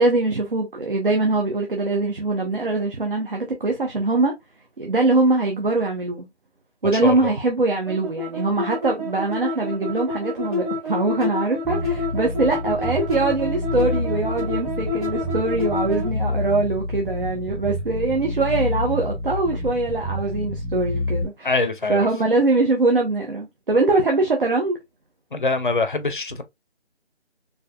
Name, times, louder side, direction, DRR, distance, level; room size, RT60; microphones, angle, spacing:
voice 1, 0.0-4.3 4.8-6.3 6.8-21.5 21.9-24.8, right 3 dB, 50° right, 0.8 m, -22 dB
voice 2, 6.8-7.3 21.4-22.1 25.3-26.4, left 3 dB, 45° left, 0.6 m, -24 dB
sound 1, 7.9-16.1, left 3 dB, 30° right, 2.4 m, -28 dB
Bass guitar, 11.6-21.2, left 1 dB, ahead, 0.5 m, -28 dB
4.4 x 2.8 x 2.3 m
figure-of-eight pair, 170°, 34 cm